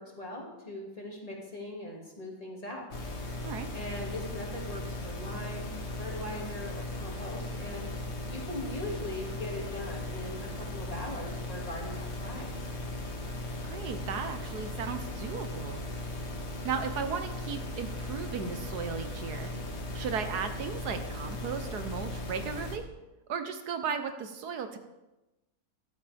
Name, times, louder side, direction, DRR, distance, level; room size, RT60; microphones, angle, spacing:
voice 1, 0.0-2.9 3.7-12.5, left 1 dB, 25° left, -2 dB, 2.5 m, -40 dB
sound 1, 2.9-22.8, left 1 dB, 45° left, 1.6 m, -37 dB
voice 2, 13.6-15.8 16.6-19.5 19.9-22.8 23.3-24.8, right 6 dB, 80° right, 8 dB, 1.5 m, -35 dB
14.5 x 12.0 x 3.5 m, 1.0 s
omnidirectional pair, 1.7 m